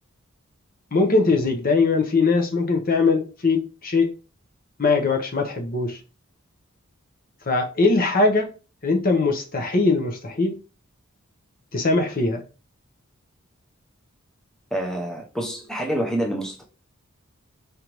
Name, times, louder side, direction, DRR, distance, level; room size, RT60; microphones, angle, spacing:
voice 1, 0.9-4.1 4.8-6.0 7.5-8.5 8.8-10.6 11.7-12.4, left 3 dB, 45° left, 0.9 m, -21 dB
voice 2, 14.7-16.6, right 1 dB, ahead, 0.7 m, -27 dB
5.2 x 3.3 x 3.0 m
head